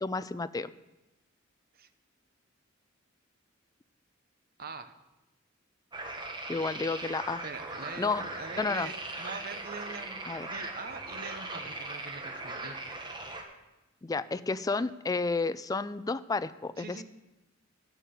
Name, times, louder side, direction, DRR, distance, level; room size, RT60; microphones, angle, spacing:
voice 1, 0.0-0.7 6.5-7.4 8.0-8.2 8.6-8.9 10.3-10.5 14.0-17.0, left 3 dB, 20° left, 14 dB, 0.3 m, -31 dB
voice 2, 4.6-5.0 7.4-13.3 16.8-17.0, right 4 dB, 50° right, 9 dB, 0.9 m, -44 dB
sound 1, 5.9-13.4, right 2 dB, 25° right, 1.3 m, -39 dB
11.0 x 8.4 x 7.0 m, 1.0 s
head